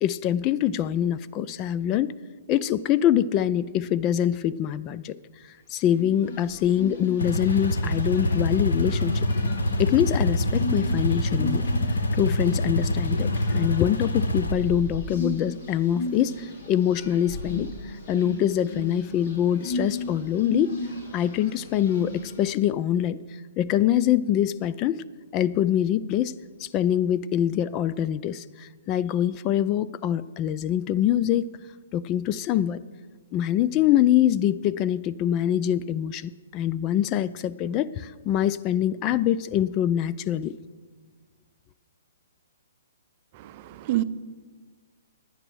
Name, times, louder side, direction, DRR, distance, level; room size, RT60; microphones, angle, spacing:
voice 1, 0.0-2.1 2.5-5.2 5.7-9.3 9.8-11.6 12.1-20.8 21.1-25.0 25.3-31.5 31.9-32.8 33.3-40.5, left 11 dB, 25° left, 15 dB, 0.3 m, -24 dB
sound 1, 5.9-22.4, left 2 dB, 45° left, 3.1 m, -36 dB
sound 2, 7.2-14.5, left 1 dB, 85° left, 1.1 m, -25 dB
voice 2, 43.4-44.0, right 15 dB, 40° right, 13 dB, 0.6 m, -28 dB
10.0 x 9.5 x 6.2 m, 1.4 s
hypercardioid pair, 145°, 0 cm